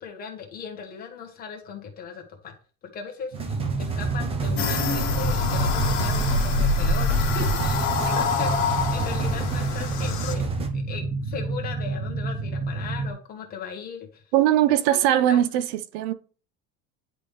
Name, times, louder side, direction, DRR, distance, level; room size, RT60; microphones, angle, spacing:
voice 1, 0.0-2.5 2.9-10.4 10.7-14.2 14.7-15.0 15.3-15.4, left 6 dB, 25° left, 1.3 m, -38 dB
sound 1, 3.3-10.7, right 4 dB, 15° right, 0.7 m, -31 dB
sound 2, 3.3-13.1, right 3 dB, 40° right, 1.5 m, -30 dB
sound 3, 4.6-10.3, left 4 dB, 60° left, 1.8 m, -25 dB
voice 2, 14.3-16.1, right 12 dB, 80° right, 0.6 m, -21 dB
10.0 x 3.5 x 3.2 m
cardioid pair, 175°, 33 cm